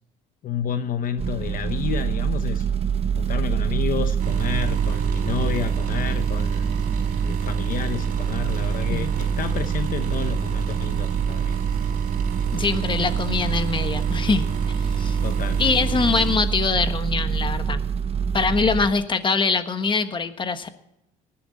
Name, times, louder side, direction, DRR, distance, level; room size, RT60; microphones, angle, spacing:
voice 1, 0.4-2.7 3.1-6.7 7.2-11.5 15.2-15.7, left 8 dB, 55° left, 9 dB, 0.9 m, -30 dB
sound 1, 1.2-18.9, right 7 dB, 35° right, 1.1 m, -25 dB
sound 2, 4.2-16.4, right 7 dB, 55° right, 4.4 m, -32 dB
voice 2, 12.5-14.5 14.8-15.2 15.6-17.8 18.3-20.7, left 4 dB, 30° left, 9 dB, 1.4 m, -23 dB
19.5 x 11.5 x 4.1 m, 0.82 s
cardioid pair, 110°, 17 cm